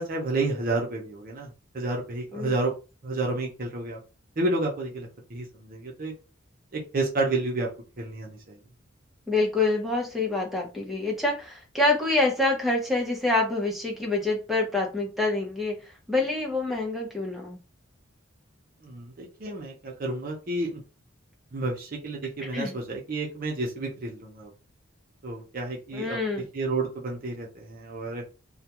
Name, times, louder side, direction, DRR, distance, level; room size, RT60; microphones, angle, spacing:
voice 1, 0.0-2.7 3.0-4.0 4.4-6.1 6.7-7.7 8.0-8.6 18.8-20.8 21.5-24.5 25.2-26.2 26.5-28.2, right 2 dB, 45° right, -1 dB, 0.6 m, -30 dB
voice 2, 9.3-17.6 22.5-22.8 25.9-26.5, left 2 dB, ahead, -1 dB, 0.6 m, -26 dB
2.2 x 2.2 x 2.8 m, 0.32 s
head